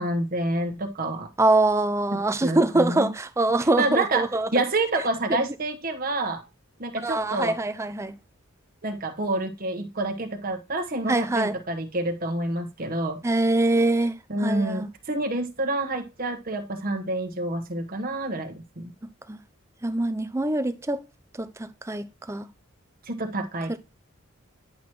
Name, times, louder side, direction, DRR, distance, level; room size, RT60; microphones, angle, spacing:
voice 1, 0.0-1.3 2.1-3.1 3.8-6.4 6.8-7.6 8.8-13.2 14.3-18.9 23.1-23.8, right 2 dB, 40° right, 1.2 m, -28 dB
voice 2, 1.4-4.5 7.0-8.2 11.1-11.5 13.2-14.9 19.3-19.4 19.8-21.0 21.4-22.5 23.7-23.8, right 2 dB, 15° right, 0.4 m, -24 dB
10.5 x 5.9 x 3.1 m
head